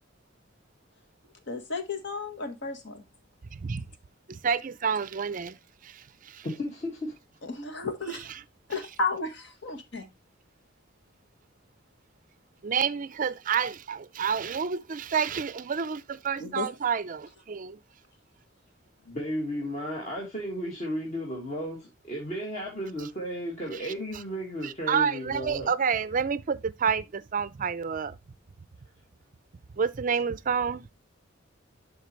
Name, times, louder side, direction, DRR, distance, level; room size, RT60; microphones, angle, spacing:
voice 1, 1.5-3.0 7.4-8.2 8.7-10.1 16.4-16.7, left 3 dB, 60° left, 1.4 m, -33 dB
voice 2, 3.5-3.8 4.3-5.6 5.8-6.5 12.6-17.8 24.6-28.2 29.7-30.9, right 6 dB, 40° right, 0.5 m, -29 dB
voice 3, 6.4-7.2 19.1-25.7, equal, 35° left, 1.8 m, -34 dB
12.0 x 4.1 x 3.0 m
head